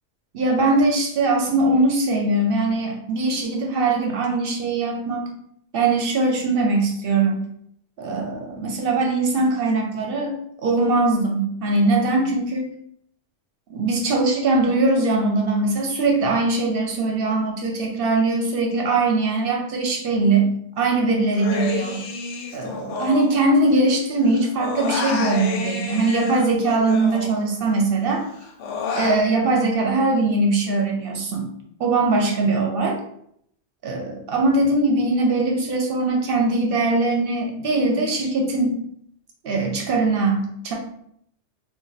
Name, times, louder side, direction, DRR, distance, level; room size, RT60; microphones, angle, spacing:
voice 1, 0.3-5.3 5.7-7.4 8.0-10.3 10.6-12.7 13.7-22.0 22.5-28.2 28.9-31.5 31.8-33.0 33.8-38.8 39.4-40.7, right 2 dB, 65° right, 1 dB, 0.7 m, -21 dB
Human voice, 21.3-24.0 24.2-27.7 28.1-29.2, left 4 dB, 90° left, 0.9 m, -30 dB
2.4 x 2.2 x 3.9 m, 0.72 s
omnidirectional pair, 1.2 m